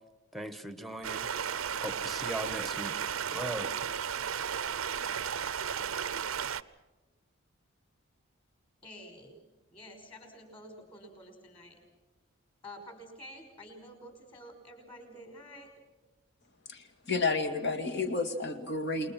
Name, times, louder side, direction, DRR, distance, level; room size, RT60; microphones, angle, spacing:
voice 1, 0.3-1.3 1.8-3.0 3.3-3.7, right 1 dB, ahead, 11 dB, 1.2 m, -38 dB
Stream, 1.0-6.6, right 8 dB, 70° right, 0.7 m, -34 dB
voice 2, 8.8-9.4 9.7-11.8 12.6-15.7, equal, 25° left, 5 dB, 5.3 m, -49 dB
voice 3, 16.7-19.1, left 3 dB, 50° left, 8 dB, 2.3 m, -31 dB
29.5 x 21.0 x 6.0 m, 1.1 s
head